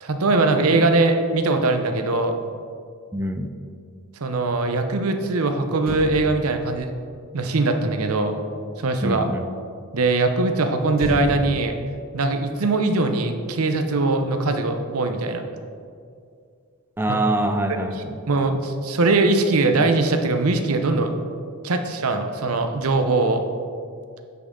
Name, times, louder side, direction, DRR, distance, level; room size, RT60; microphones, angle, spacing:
voice 1, 0.0-2.3 4.2-6.9 7.3-8.3 8.8-9.3 9.9-11.7 12.1-15.4 17.1-17.2 18.3-21.1 21.6-23.4, right 3 dB, 90° right, 7 dB, 0.8 m, -21 dB
voice 2, 3.1-3.5 9.0-9.5 17.0-18.2, right 1 dB, 10° right, 6 dB, 0.4 m, -24 dB
Motor vehicle (road), 5.8-9.3 10.9-13.5 13.8-14.1, equal, 45° right, 1.5 m, -37 dB
9.9 x 5.8 x 3.7 m, 2.2 s
head